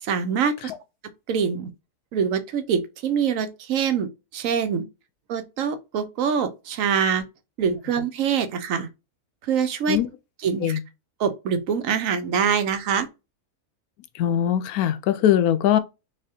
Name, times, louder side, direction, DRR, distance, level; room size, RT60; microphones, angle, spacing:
voice 1, 0.0-0.7 1.3-1.7 2.1-4.1 4.3-4.8 5.3-7.2 7.6-8.9 9.4-10.0 10.4-10.8 11.2-13.1, right 7 dB, 65° right, 1.0 m, -24 dB
voice 2, 14.1-15.8, left 11 dB, 80° left, 1.0 m, -21 dB
4.0 x 3.4 x 2.8 m
omnidirectional pair, 1.6 m